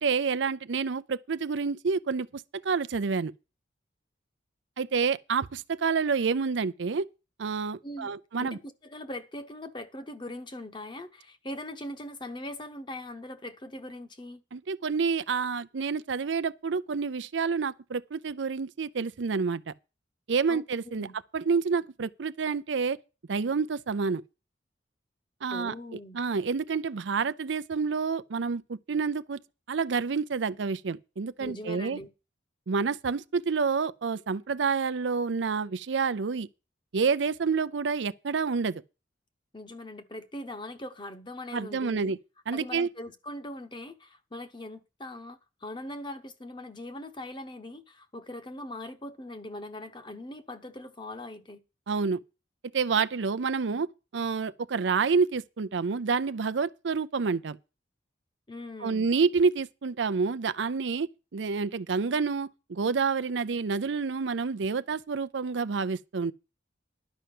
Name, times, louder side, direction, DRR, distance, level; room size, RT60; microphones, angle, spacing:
voice 1, 0.0-3.3 4.8-7.0 7.4-8.6 14.5-19.7 20.3-21.1 21.3-23.0 23.3-24.2 25.4-25.7 26.1-29.4 29.7-32.0 32.7-36.5 36.9-38.8 41.5-42.2 42.5-42.9 51.9-52.2 52.7-53.9 54.1-57.6 58.8-66.3, right 5 dB, 80° right, 0.5 m, -28 dB
voice 2, 8.4-14.4 20.5-21.1 25.5-26.2 31.4-32.1 39.5-42.1 42.5-51.6 58.5-59.1, left 1 dB, 25° left, 1.0 m, -41 dB
11.5 x 5.6 x 7.7 m
head